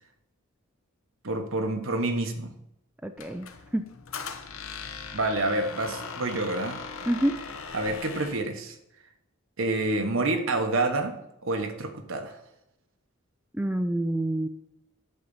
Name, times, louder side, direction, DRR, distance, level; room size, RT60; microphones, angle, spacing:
voice 1, 1.2-2.5 5.1-6.9 7.7-8.8 9.6-12.4, right 2 dB, 65° right, 5 dB, 1.2 m, -28 dB
voice 2, 3.0-3.5 3.7-3.8 7.1-7.4 13.5-14.5, right 1 dB, 5° right, 7 dB, 0.4 m, -27 dB
Squeak, 3.2-8.5, left 5 dB, 70° left, 0.9 m, -39 dB
10.5 x 4.0 x 7.1 m, 0.83 s
head